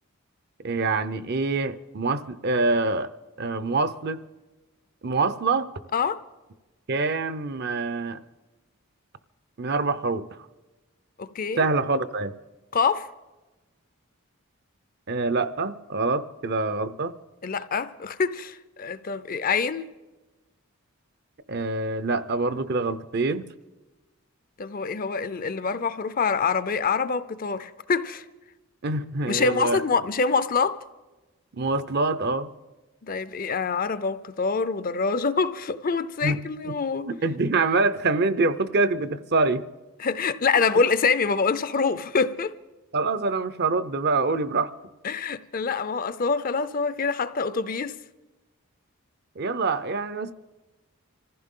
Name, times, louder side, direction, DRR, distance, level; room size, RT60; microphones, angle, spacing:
voice 1, 0.6-3.1 3.4-4.2 5.0-5.7 6.9-8.2 9.6-10.3 11.6-12.3 15.1-17.1 21.5-23.5 28.8-29.8 31.5-32.5 36.2-36.4 36.6-36.8 37.1-39.6 42.9-44.7 49.4-50.3, right 3 dB, 45° right, 0.6 m, -25 dB
voice 2, 11.2-11.7 12.7-13.1 17.4-19.9 24.6-28.2 29.3-30.8 33.0-37.1 40.0-42.5 45.0-48.0, left 5 dB, 40° left, 0.5 m, -25 dB
25.5 x 15.0 x 3.7 m
head